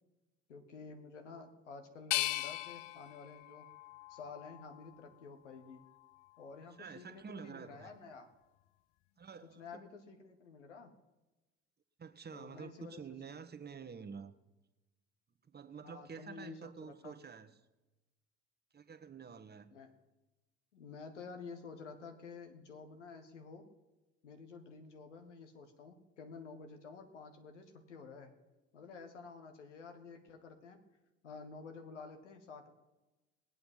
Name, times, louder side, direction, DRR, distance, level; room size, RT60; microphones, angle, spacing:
voice 1, 0.5-3.7 4.1-5.8 6.4-8.3 9.5-10.9 12.3-13.0 15.8-17.1 19.7-19.9 20.7-23.6 24.2-28.3 28.7-30.8 31.2-32.7, left 4 dB, 85° left, 6 dB, 1.4 m, -51 dB
sound 1, 2.1-5.0 5.6-6.4, left 18 dB, 60° left, 0.5 m, -40 dB
voice 2, 6.8-8.0 9.2-9.8 12.0-14.4 15.4-17.6 18.7-19.7, right 6 dB, 30° right, 10 dB, 1.2 m, -49 dB
20.5 x 8.6 x 5.6 m, 1.1 s
figure-of-eight pair, 55°, 35 cm